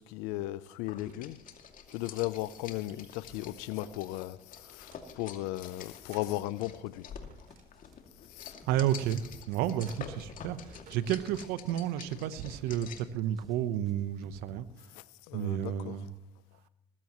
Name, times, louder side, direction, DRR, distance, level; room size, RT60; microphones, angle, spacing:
voice 1, 0.0-1.4 1.9-7.1 8.3-8.5 14.9-16.0, left 16 dB, 85° left, 0.7 m, -36 dB
sound 1, 0.8-11.8, right 6 dB, 65° right, 3.8 m, -62 dB
sound 2, 0.9-13.2, left 7 dB, 60° left, 2.6 m, -48 dB
sound 3, 6.6-6.9 7.2-8.0 8.2-8.9 9.2-9.9 10.2-10.9 11.2-12.0 12.2-12.9 13.2-14.6, left 1 dB, ahead, 2.2 m, -58 dB
voice 2, 8.7-14.7 15.3-16.1, right 11 dB, 80° right, 1.1 m, -31 dB
20.0 x 15.0 x 3.1 m
supercardioid pair, 65°, 16 cm